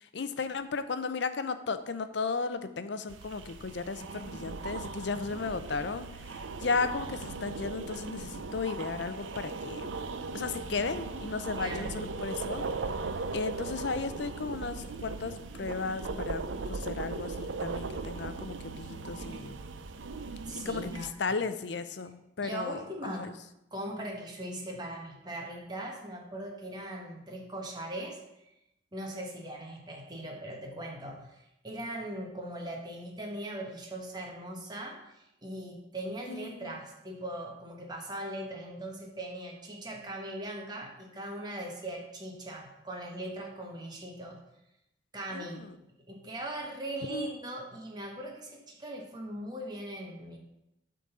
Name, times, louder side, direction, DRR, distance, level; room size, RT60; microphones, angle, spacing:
voice 1, 0.0-10.0 10.3-12.6 13.3-19.5 20.6-23.3 36.3-36.7 45.3-45.8 47.1-47.3, left 4 dB, 65° left, 11 dB, 0.6 m, -35 dB
sound 1, 3.1-21.1, right 4 dB, 80° right, 0.5 m, -38 dB
voice 2, 11.6-11.9 20.4-21.1 22.4-23.4 23.7-28.2 28.9-44.4 45.1-45.6 46.1-50.4, right 1 dB, 20° right, 0 dB, 1.3 m, -40 dB
8.4 x 3.9 x 6.7 m, 0.86 s
head